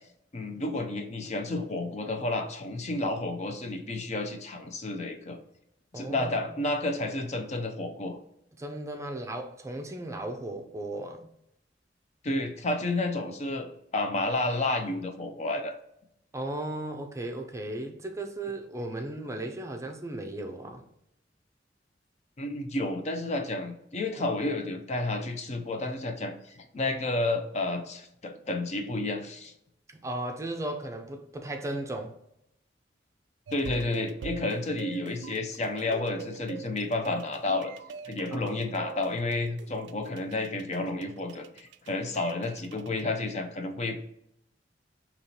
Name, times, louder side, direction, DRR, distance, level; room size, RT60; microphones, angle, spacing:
voice 1, 0.3-5.4 5.9-8.2 12.2-15.7 22.4-29.5 33.5-37.7 38.1-44.0, left 2 dB, 40° left, 0.5 m, -31 dB
voice 2, 5.9-6.7 8.6-11.3 16.3-20.9 30.0-32.2 38.3-38.6, right 1 dB, 15° right, 0.5 m, -36 dB
sound 1, 33.5-43.0, right 7 dB, 85° right, 0.3 m, -44 dB
5.4 x 2.9 x 2.8 m
head